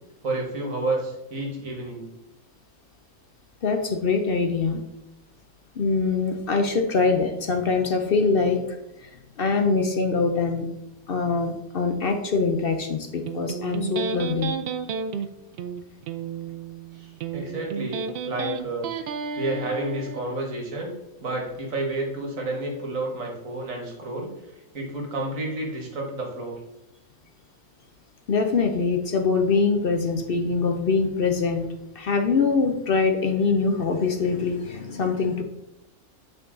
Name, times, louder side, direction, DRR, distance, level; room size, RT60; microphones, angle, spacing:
voice 1, 0.2-2.1 16.9-18.9 19.4-20.9 21.2-24.4 24.7-26.6, right 2 dB, 65° right, 0 dB, 1.8 m, -30 dB
voice 2, 3.6-4.8 5.8-10.7 11.1-14.5 28.3-31.7 31.9-35.4, left 4 dB, 55° left, 5 dB, 0.6 m, -23 dB
Electric guitar, 13.3-20.2, right 6 dB, 80° right, 0.5 m, -32 dB
8.2 x 3.9 x 3.7 m, 0.91 s
omnidirectional pair, 1.5 m